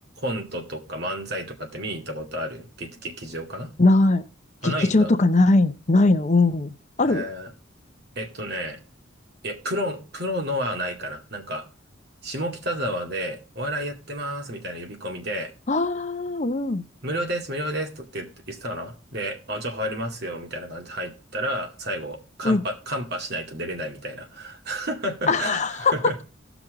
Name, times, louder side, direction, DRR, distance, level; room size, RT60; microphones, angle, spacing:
voice 1, 0.2-3.7 4.6-5.1 7.0-7.5 8.2-8.8 9.4-11.7 12.2-15.5 17.0-26.2, equal, 55° right, 3 dB, 2.1 m, -31 dB
voice 2, 3.8-4.2 4.6-7.3 15.7-16.8 22.4-22.6 25.3-26.2, left 2 dB, 35° left, 10 dB, 0.7 m, -20 dB
16.0 x 6.1 x 3.8 m, 0.34 s
head